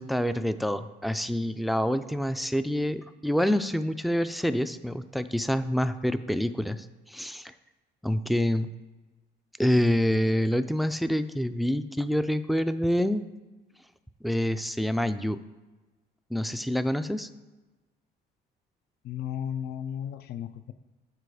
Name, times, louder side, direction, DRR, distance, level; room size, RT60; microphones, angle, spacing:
voice 1, 0.0-7.5 8.0-8.7 9.6-13.2 14.2-15.4 16.3-17.3, equal, ahead, 11 dB, 0.3 m, -27 dB
voice 2, 19.0-20.7, left 9 dB, 60° left, 11 dB, 0.4 m, -34 dB
9.2 x 3.9 x 4.8 m, 1.2 s
cardioid pair, 90°, 19 cm